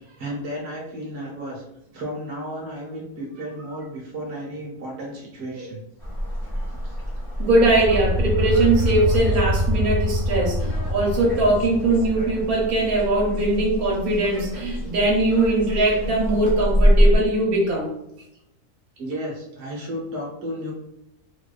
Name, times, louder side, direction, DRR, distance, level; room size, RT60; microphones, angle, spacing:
voice 1, 0.0-1.6 1.9-5.8 6.8-7.0 18.3-18.4 19.0-20.7, equal, 55° right, -3 dB, 1.0 m, -33 dB
sound 1, 6.0-17.2, equal, 20° left, 0.7 m, -26 dB
voice 2, 7.4-17.9, right 2 dB, 80° right, -2 dB, 1.1 m, -21 dB
sound 2, 7.7-12.8, equal, 80° left, 1.1 m, -25 dB
2.8 x 2.2 x 2.3 m, 0.84 s
omnidirectional pair, 1.5 m